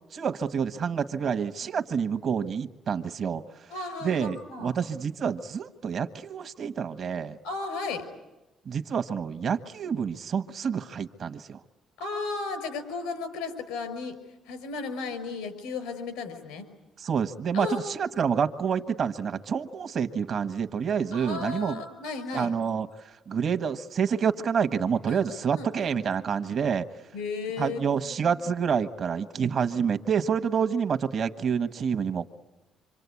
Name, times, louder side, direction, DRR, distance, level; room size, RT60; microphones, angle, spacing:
voice 1, 0.1-3.4 4.0-7.4 8.7-11.6 17.0-21.8 22.3-22.9 23.3-26.8 27.6-32.3, right 7 dB, 55° right, 9 dB, 1.3 m, -28 dB
voice 2, 3.7-4.7 7.4-8.1 12.0-14.2 14.5-16.6 17.5-18.1 21.1-22.5 25.1-25.7 27.1-28.4, left 4 dB, 90° left, 11 dB, 5.5 m, -35 dB
26.5 x 25.0 x 8.4 m, 1.1 s
supercardioid pair, 65°, 0 cm